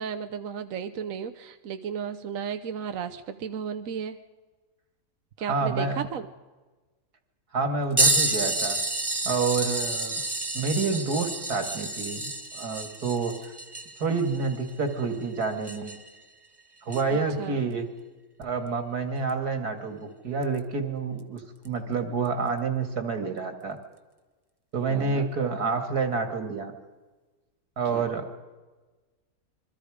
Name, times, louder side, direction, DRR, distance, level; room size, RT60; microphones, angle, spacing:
voice 1, 0.0-4.2 5.4-6.3 17.1-17.6 24.9-25.3 27.9-28.1, right 7 dB, 65° right, 8 dB, 1.2 m, -34 dB
voice 2, 5.4-6.0 7.5-8.8 9.2-10.2 10.5-13.5 14.0-16.0 16.8-17.9 18.4-23.8 24.7-26.7 27.8-28.3, right 4 dB, 80° right, 6 dB, 2.8 m, -28 dB
sound 1, 8.0-16.2 16.9-17.0 19.3-19.4 20.4-20.6 21.7-21.8, right 2 dB, 15° right, 1.1 m, -29 dB
26.5 x 23.5 x 5.0 m, 1.3 s
omnidirectional pair, 1.6 m